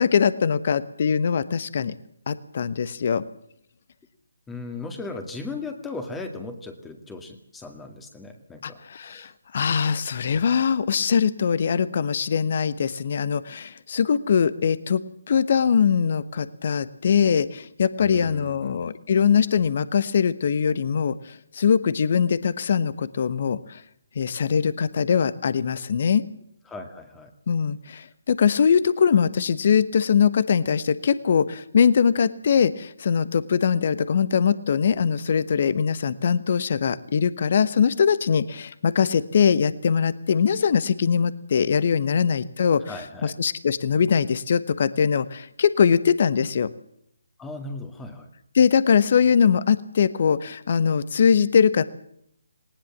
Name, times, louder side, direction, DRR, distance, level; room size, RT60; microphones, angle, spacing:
voice 1, 0.0-1.9 2.3-3.2 8.6-15.0 15.3-23.8 24.1-26.2 27.5-42.9 43.2-46.7 48.5-51.8, left 7 dB, 50° left, 17 dB, 1.1 m, -22 dB
voice 2, 4.5-9.3 18.0-18.8 26.7-27.3 42.9-43.4 47.4-48.3, left 3 dB, 10° left, 5 dB, 2.0 m, -37 dB
19.5 x 19.0 x 7.4 m, 0.71 s
figure-of-eight pair, 150°, 0 cm